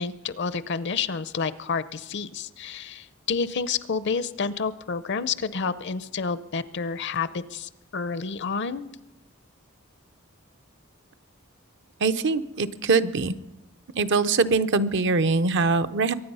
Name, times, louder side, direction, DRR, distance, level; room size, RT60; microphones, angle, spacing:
voice 1, 0.0-8.8, left 5 dB, 55° left, 15 dB, 0.6 m, -29 dB
voice 2, 12.0-13.3 14.0-16.1, right 3 dB, 60° right, 12 dB, 0.7 m, -23 dB
23.0 x 9.6 x 5.5 m, 1.0 s
head